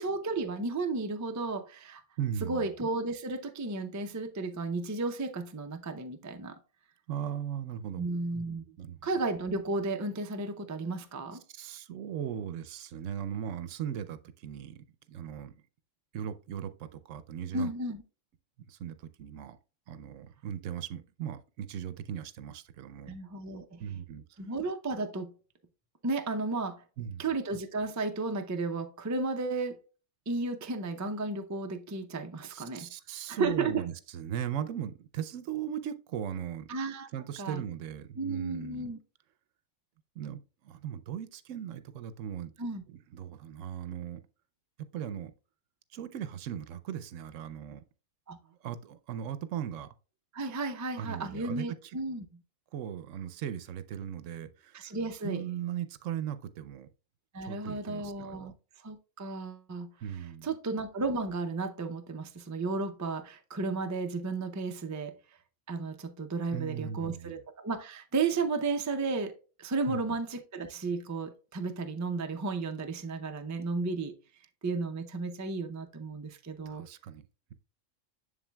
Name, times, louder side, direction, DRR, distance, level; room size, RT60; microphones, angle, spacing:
voice 1, 0.0-2.0 2.5-6.6 8.0-8.6 9.0-11.4 17.5-18.0 23.1-23.8 24.4-25.3 26.0-26.8 27.2-29.8 30.3-32.9 33.3-33.8 36.7-37.1 37.4-37.6 38.2-39.0 42.6-42.8 48.3-48.4 50.3-52.2 54.7-55.5 57.3-58.5 58.8-59.9 60.4-65.1 65.7-74.1 74.6-76.9, right 3 dB, 30° right, 0.3 m, -33 dB
voice 2, 2.2-2.7 7.1-8.1 8.8-9.0 11.5-15.6 16.1-17.7 18.7-19.6 19.9-23.2 23.8-24.2 27.0-27.2 32.5-36.7 37.1-38.9 40.2-42.5 42.9-44.2 44.9-45.3 45.9-47.8 48.5-49.9 51.0-51.9 52.7-54.9 55.2-56.9 57.4-58.5 60.0-60.5 66.5-67.4 69.9-70.0 76.7-77.2, right 9 dB, 75° right, 1.0 m, -38 dB
7.3 x 6.7 x 2.2 m
omnidirectional pair, 1.3 m